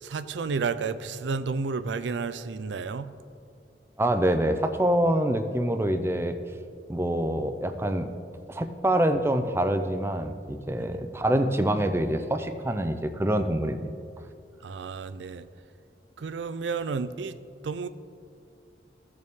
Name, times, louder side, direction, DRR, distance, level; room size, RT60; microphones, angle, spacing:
voice 1, 0.0-3.1 10.8-11.0 14.6-15.5 16.2-17.4 17.6-17.9, right 4 dB, 90° right, 13 dB, 0.4 m, -31 dB
voice 2, 4.0-6.4 6.9-8.1 8.5-13.9, right 1 dB, 15° right, 8 dB, 0.5 m, -25 dB
15.5 x 6.6 x 3.6 m, 2.3 s
head